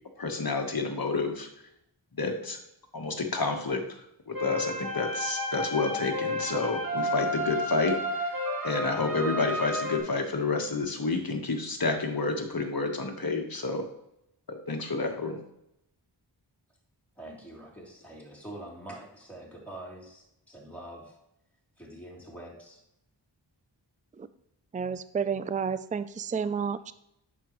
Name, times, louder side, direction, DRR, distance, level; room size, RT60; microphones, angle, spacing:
voice 1, 0.2-1.5 2.1-2.6 2.9-8.4 8.6-13.9 14.5-15.4, left 3 dB, 50° left, 4 dB, 1.4 m, -30 dB
sound 1, 4.3-10.0, left 1 dB, 45° right, 2.1 m, -31 dB
voice 2, 17.2-21.2 21.8-22.8, right 1 dB, 5° left, -4 dB, 3.2 m, -45 dB
voice 3, 24.7-26.9, right 6 dB, 20° right, 14 dB, 0.4 m, -31 dB
8.9 x 6.9 x 3.1 m, 0.81 s
wide cardioid pair, 45°, 46 cm